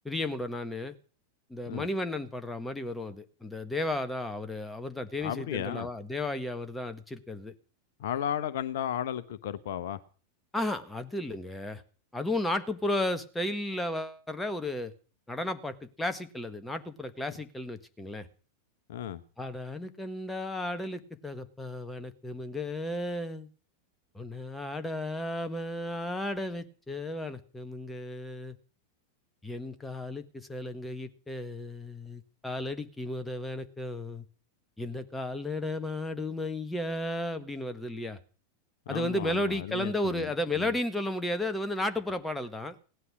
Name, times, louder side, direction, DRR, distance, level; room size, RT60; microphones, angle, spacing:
voice 1, 0.0-0.9 1.5-7.5 10.5-11.8 12.1-14.9 15.3-18.3 19.4-23.5 24.1-28.6 29.4-34.2 34.8-38.2 38.9-42.8, left 1 dB, 5° left, 1.5 m, -34 dB
voice 2, 5.2-5.9 8.0-10.0 18.9-19.2 38.9-40.3 40.6-40.7, left 10 dB, 55° left, 0.9 m, -34 dB
17.0 x 11.5 x 6.3 m
figure-of-eight pair, 90°, 0 cm